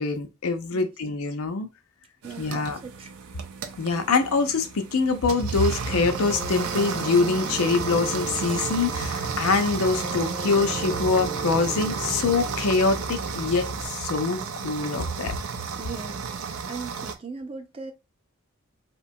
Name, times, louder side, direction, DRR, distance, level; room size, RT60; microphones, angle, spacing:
voice 1, 0.0-1.7 2.4-2.8 3.8-15.4, left 4 dB, 85° left, 0.5 m, -24 dB
voice 2, 2.2-3.1 15.8-17.9, right 4 dB, 25° right, 0.4 m, -39 dB
sound 1, 2.2-17.1, right 6 dB, 85° right, 0.4 m, -33 dB
sound 2, 5.9-13.9, right 2 dB, 50° right, 0.7 m, -35 dB
2.8 x 2.2 x 2.6 m
head